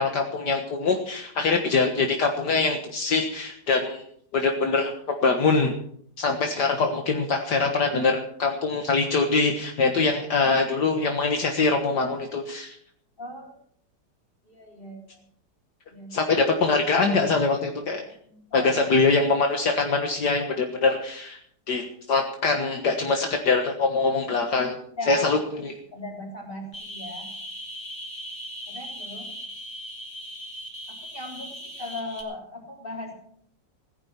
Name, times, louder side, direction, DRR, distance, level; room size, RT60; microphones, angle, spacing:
voice 1, 0.0-4.0 4.3-5.7 6.2-12.7 16.1-18.0 18.5-21.4 21.7-24.8 25.1-25.7, left 4 dB, 65° left, 3 dB, 2.1 m, -23 dB
voice 2, 13.2-13.6 14.5-15.2 15.9-16.1 18.3-18.8 24.9-25.4 25.9-27.3 28.7-29.3 31.1-33.1, left 1 dB, 30° left, 0 dB, 3.9 m, -38 dB
sound 1, 26.7-32.2, equal, 15° left, 2.7 m, -38 dB
17.5 x 11.0 x 5.9 m, 0.64 s
omnidirectional pair, 2.0 m